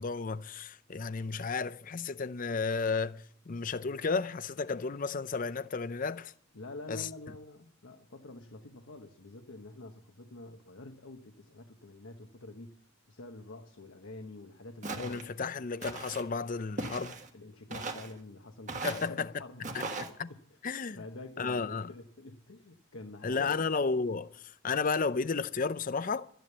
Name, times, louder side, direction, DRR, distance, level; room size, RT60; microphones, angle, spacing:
voice 1, 0.0-6.3 6.9-7.1 15.0-17.2 18.8-19.3 19.7-19.8 20.2-20.3 20.6-21.0 21.4-21.9 23.2-26.3, left 4 dB, 40° left, 0.5 m, -33 dB
voice 2, 6.5-15.5 17.3-19.9 20.3-20.6 20.9-23.6, left 2 dB, 70° left, 1.1 m, -47 dB
Walk footsteps, 14.8-15.3 15.8-16.2 16.8-17.3 17.7-18.1 18.7-19.1 19.6-20.1, right 3 dB, 35° right, 1.5 m, -38 dB
12.5 x 10.5 x 6.8 m
head